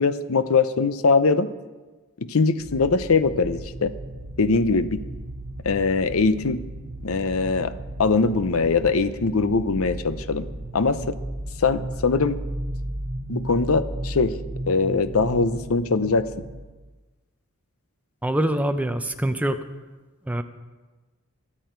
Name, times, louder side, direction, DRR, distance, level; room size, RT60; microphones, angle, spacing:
voice 1, 0.0-1.5 2.3-3.9 4.4-5.0 5.6-6.6 7.0-7.7 8.0-10.4 10.7-11.1 11.6-12.4 13.3-14.3 14.7-16.3, left 4 dB, 70° left, 13 dB, 0.7 m, -21 dB
sound 1, 2.6-16.6, right 1 dB, 35° right, 2.4 m, -35 dB
voice 2, 18.2-19.6 20.3-20.4, right 1 dB, 5° right, 8 dB, 0.7 m, -24 dB
23.5 x 8.6 x 4.6 m, 1.2 s
head